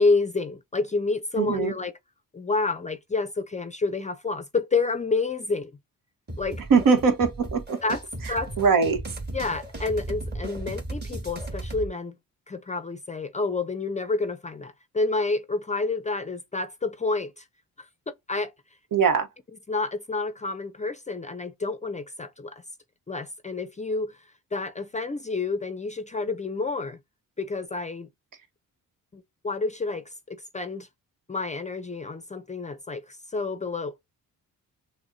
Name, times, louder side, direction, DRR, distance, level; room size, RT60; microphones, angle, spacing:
voice 1, 0.0-1.9 2.3-5.7 6.4-6.6 7.8-8.0 8.3-8.5 9.3-12.2 12.5-17.4 18.1-18.5 19.7-22.6 23.1-24.2 24.5-27.0 27.4-28.1 29.1-30.9 31.3-34.1, left 3 dB, 20° left, 0.5 m, -29 dB
voice 2, 1.4-1.7 6.7-7.8 8.2-9.0 18.9-19.3, right 5 dB, 70° right, 1.1 m, -21 dB
sound 1, 6.3-11.9, right 2 dB, 30° right, 1.6 m, -36 dB
6.1 x 2.1 x 2.6 m
cardioid pair, 90°, 35 cm